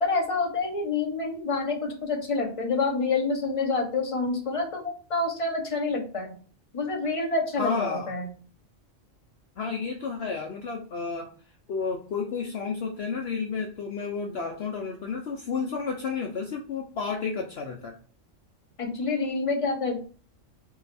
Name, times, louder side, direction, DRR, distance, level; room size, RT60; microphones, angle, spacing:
voice 1, 0.0-6.4 6.7-8.3 18.8-20.0, left 3 dB, 30° left, 2 dB, 0.9 m, -27 dB
voice 2, 7.6-8.1 9.6-11.3 11.7-18.0, left 5 dB, 60° left, 2 dB, 0.8 m, -31 dB
3.9 x 3.3 x 4.1 m, 0.40 s
omnidirectional pair, 1.3 m